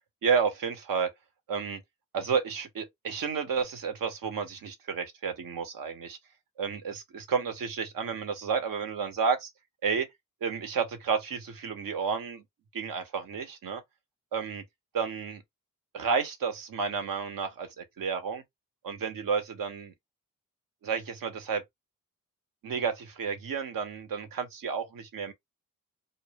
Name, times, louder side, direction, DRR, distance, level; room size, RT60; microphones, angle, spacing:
voice 1, 0.2-1.1 1.5-1.8 2.1-6.2 6.6-9.5 9.8-10.1 10.4-12.4 12.7-13.8 14.3-14.6 14.9-15.4 15.9-18.4 18.8-19.9 20.8-21.6 22.6-25.3, right 6 dB, 70° right, 0.8 m, -31 dB
2.0 x 2.0 x 3.3 m
supercardioid pair, 45°, 35 cm